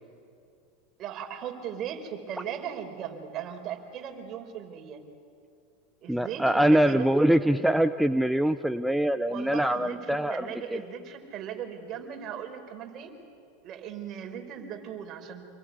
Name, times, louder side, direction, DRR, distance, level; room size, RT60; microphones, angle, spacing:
voice 1, 1.0-5.0 6.0-7.0 9.3-13.1 13.6-15.4, right 8 dB, 45° right, 5 dB, 4.8 m, -38 dB
voice 2, 6.1-10.8, right 1 dB, ahead, 10 dB, 0.8 m, -24 dB
28.0 x 22.0 x 9.7 m, 2.4 s
hypercardioid pair, 90°, 0 cm